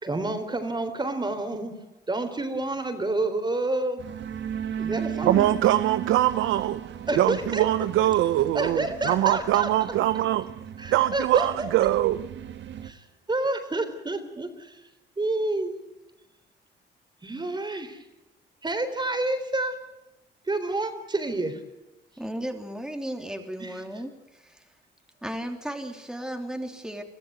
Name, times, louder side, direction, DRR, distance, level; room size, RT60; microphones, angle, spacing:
voice 1, 0.0-1.7 2.1-4.0 4.8-5.5 7.1-7.6 8.5-9.7 10.8-11.7 12.8-14.8 15.2-15.8 17.2-18.0 18.6-19.7 20.5-21.6 23.6-23.7, right 2 dB, 20° right, 3.8 m, -29 dB
sound 1, 4.0-12.9, right 9 dB, 65° right, 1.6 m, -36 dB
voice 2, 5.2-6.8 7.2-10.4 10.9-12.3, right 13 dB, 85° right, 0.8 m, -23 dB
voice 3, 22.2-24.8 25.2-27.0, right 1 dB, 5° right, 3.1 m, -35 dB
23.0 x 14.5 x 9.5 m
cardioid pair, 90°, 20 cm